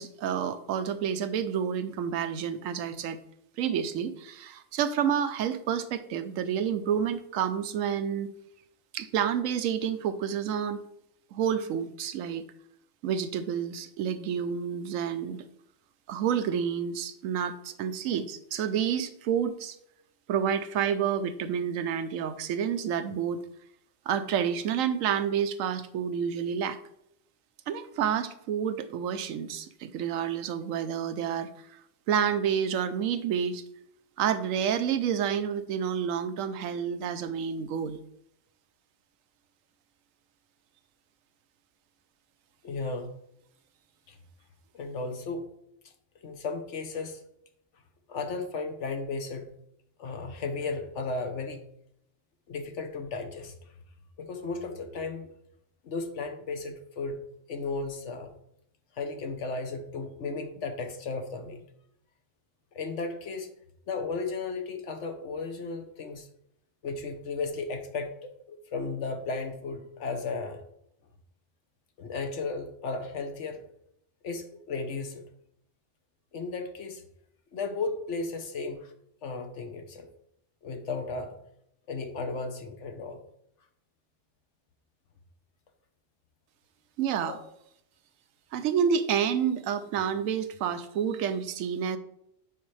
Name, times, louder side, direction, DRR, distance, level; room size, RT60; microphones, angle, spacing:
voice 1, 0.0-3.2 3.6-8.3 8.9-10.9 11.3-12.4 13.0-15.4 16.1-19.8 20.3-23.4 24.1-26.8 27.7-31.5 32.1-33.6 34.2-38.0 87.0-87.4 88.5-92.0, right 8 dB, 90° right, 11 dB, 1.0 m, -29 dB
voice 2, 42.6-43.1 44.1-44.2 44.7-45.4 46.2-47.2 48.1-49.5 50.0-51.7 52.5-53.6 54.2-55.3 55.8-57.2 57.5-58.3 58.9-61.6 62.7-63.5 63.9-66.3 66.8-70.6 72.0-73.6 74.2-75.2 76.3-77.0 77.5-78.9 79.2-80.1 80.6-81.4 81.9-83.2 87.2-87.4, left 3 dB, 65° left, 6 dB, 1.2 m, -34 dB
9.2 x 4.3 x 3.2 m, 0.76 s
omnidirectional pair, 1.3 m